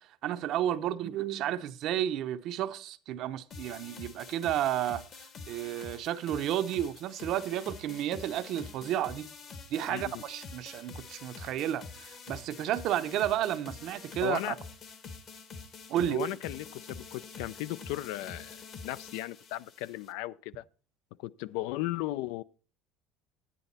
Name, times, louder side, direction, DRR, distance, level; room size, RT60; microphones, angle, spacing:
voice 1, 0.0-9.3 9.7-14.5 15.9-16.3, right 11 dB, 55° right, 0.6 m, -32 dB
sound 1, 3.5-20.1, left 5 dB, 40° left, 1.1 m, -47 dB
voice 2, 9.9-10.2 14.2-14.6 16.1-20.6 21.2-22.4, left 16 dB, 80° left, 0.4 m, -36 dB
9.9 x 8.9 x 4.1 m
cardioid pair, 140°, 0 cm